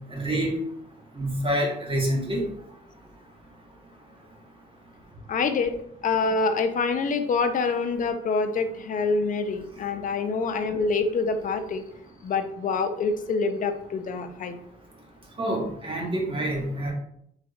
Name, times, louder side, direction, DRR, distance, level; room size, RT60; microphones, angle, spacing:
voice 1, 0.1-0.5 1.2-2.4 15.4-16.9, right 1 dB, 25° right, -1 dB, 1.2 m, -27 dB
voice 2, 5.3-5.8 6.0-11.9 12.2-14.5, left 4 dB, 45° left, 8 dB, 0.4 m, -26 dB
3.4 x 3.2 x 2.4 m, 0.71 s
cardioid pair, 85°, 20 cm